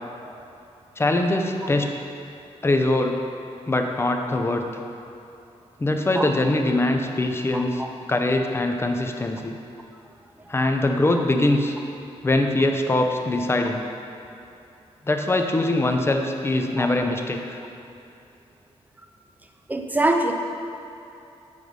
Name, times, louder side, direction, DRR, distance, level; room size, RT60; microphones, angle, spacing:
voice 1, 1.0-1.9 2.6-3.2 3.7-4.6 5.8-7.8 8.1-9.6 10.5-11.8 12.2-13.8 15.1-17.6, left 2 dB, 20° left, 4 dB, 0.7 m, -22 dB
voice 2, 7.5-7.9 16.8-16.9 19.7-20.3, right 2 dB, 15° right, 4 dB, 0.7 m, -23 dB
8.0 x 4.9 x 5.3 m, 2.9 s
cardioid pair, 100°, 11 cm